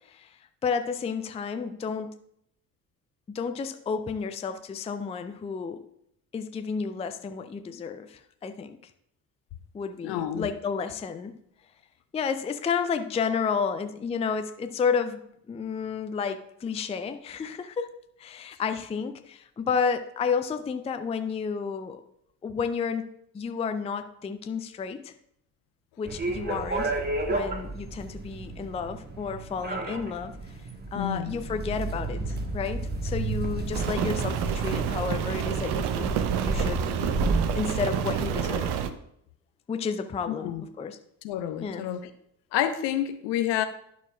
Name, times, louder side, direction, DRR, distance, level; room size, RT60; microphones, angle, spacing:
voice 1, 0.1-2.2 3.3-5.8 6.3-8.8 9.7-11.3 12.1-15.2 15.5-17.9 18.2-22.0 22.4-23.1 23.3-25.1 26.0-26.9 27.3-30.4 30.9-36.1 36.4-37.1 37.5-38.8 39.7-41.0 41.6-41.8, left 6 dB, 15° left, 0.4 m, -31 dB
voice 2, 10.0-10.5 30.9-31.3 40.4-40.6 41.2-42.1 42.5-43.6, left 11 dB, 55° left, 0.8 m, -29 dB
sound 1, 26.0-38.7, right 2 dB, 20° right, 1.3 m, -32 dB
Rain, 33.7-38.9, right 8 dB, 55° right, 0.8 m, -29 dB
11.5 x 6.3 x 2.3 m
figure-of-eight pair, 50°, 50 cm